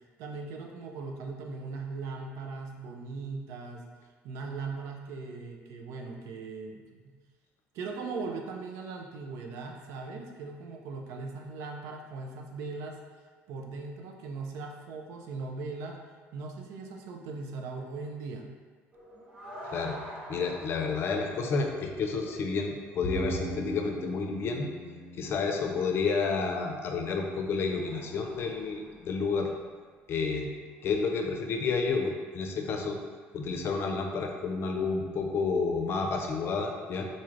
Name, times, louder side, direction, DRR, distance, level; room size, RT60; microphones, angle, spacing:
voice 1, 0.2-3.8 4.2-7.1 7.7-13.0 13.5-16.0 16.3-18.5, right 4 dB, 75° right, 2 dB, 0.5 m, -39 dB
sound 1, 18.9-30.0 30.7-30.8, equal, 20° right, 0.8 m, -45 dB
voice 2, 20.3-24.7 25.1-29.5 30.1-30.5 30.8-33.0 33.3-37.1, left 4 dB, 50° left, 3 dB, 0.5 m, -30 dB
Bowed string instrument, 23.0-26.4, right 2 dB, 20° left, 0.9 m, -41 dB
4.0 x 3.1 x 2.5 m, 1.5 s
cardioid pair, 105°, 5 cm